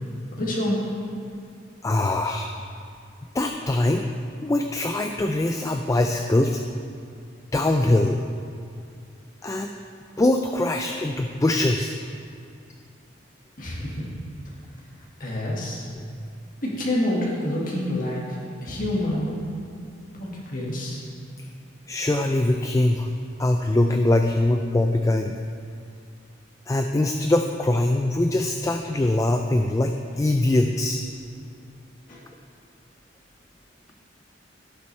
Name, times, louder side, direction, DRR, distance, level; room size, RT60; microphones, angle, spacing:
voice 1, 0.3-0.8 13.6-14.1 15.2-15.8 16.6-19.5 20.2-21.0 32.1-32.2, left 1 dB, 45° left, -5 dB, 1.8 m, -27 dB
voice 2, 1.8-2.5 3.3-4.0 4.4-6.6 7.5-8.2 9.4-9.7 10.2-12.0 21.9-23.1 23.4-25.3 26.7-31.0, left 1 dB, 15° left, 4 dB, 0.3 m, -22 dB
16.0 x 7.0 x 3.2 m, 2.4 s
head